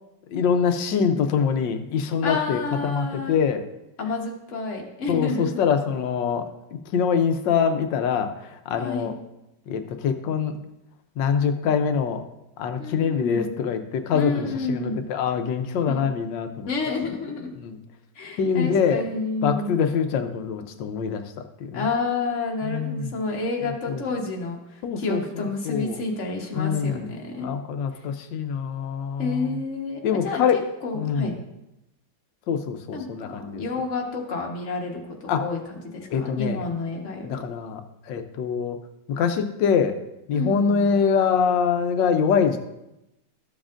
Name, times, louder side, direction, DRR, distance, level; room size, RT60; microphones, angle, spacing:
voice 1, 0.3-3.6 5.1-6.4 6.9-8.3 8.7-9.1 9.7-10.5 11.2-12.2 12.6-16.7 17.6-17.8 18.4-19.0 19.4-21.3 21.6-21.9 22.6-23.1 23.9-24.0 24.8-25.2 25.6-26.0 26.6-27.1 27.4-29.4 30.0-30.6 30.9-31.3 32.5-33.6 35.3-35.4 36.1-36.6 37.2-37.8 38.1-38.8 39.1-40.0 40.3-42.6, left 6 dB, 90° left, 8 dB, 1.4 m, -24 dB
voice 2, 2.2-3.4 4.0-5.6 8.7-9.1 12.8-13.5 14.1-15.0 15.8-16.1 16.7-17.6 18.1-19.8 21.7-27.5 27.9-28.0 29.2-31.3 32.9-37.4 40.3-40.8, left 3 dB, 45° left, 0 dB, 1.5 m, -30 dB
13.5 x 7.2 x 2.5 m, 0.90 s
omnidirectional pair, 1.9 m